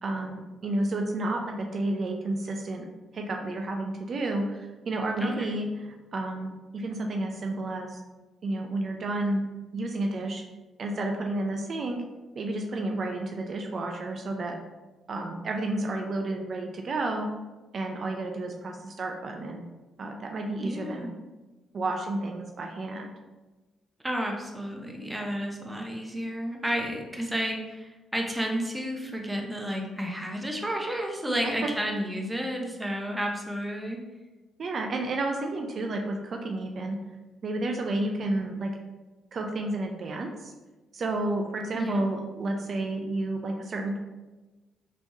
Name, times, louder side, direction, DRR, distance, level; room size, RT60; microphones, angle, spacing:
voice 1, 0.0-2.9 3.1-8.0 8.4-9.4 9.7-10.4 10.8-12.0 12.3-14.6 15.1-17.3 17.7-19.7 20.0-21.1 21.7-23.1 31.3-31.5 34.6-37.0 37.4-38.7 39.3-40.5 40.9-44.0, right 2 dB, 50° right, 3 dB, 0.4 m, -31 dB
voice 2, 5.2-5.5 20.6-21.1 24.0-34.0 41.7-42.0, equal, 5° right, 1 dB, 0.6 m, -31 dB
3.3 x 3.0 x 2.6 m, 1.2 s
cardioid pair, 90°, 0 cm